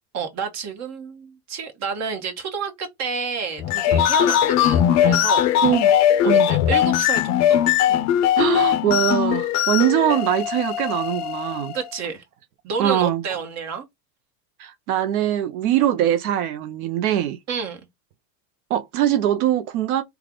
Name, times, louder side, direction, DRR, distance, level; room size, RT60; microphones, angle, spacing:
voice 1, 0.1-5.5 6.2-7.6 7.9-8.1 11.7-12.2 12.6-13.8 17.5-17.8, right 5 dB, 40° right, 1.1 m, -30 dB
sound 1, 3.6-11.9, left 10 dB, 40° left, 0.5 m, -20 dB
voice 2, 5.6-5.9 6.3-6.5 8.4-11.7 12.8-13.2 14.6-17.4 18.7-20.0, right 11 dB, 85° right, 0.6 m, -22 dB
3.3 x 2.4 x 3.6 m
supercardioid pair, 120°, 42 cm